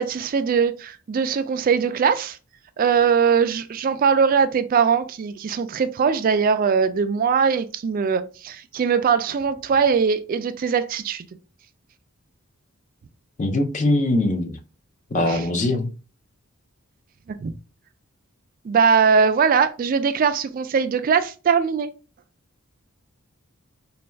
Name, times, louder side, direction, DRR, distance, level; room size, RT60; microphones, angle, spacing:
voice 1, 0.0-2.4 2.8-11.3 15.3-15.4 17.4-17.5 18.6-21.9, right 6 dB, 40° right, 0.3 m, -21 dB
voice 2, 13.4-14.6 15.1-15.9, left 2 dB, 35° left, 0.6 m, -22 dB
4.1 x 2.3 x 3.3 m
head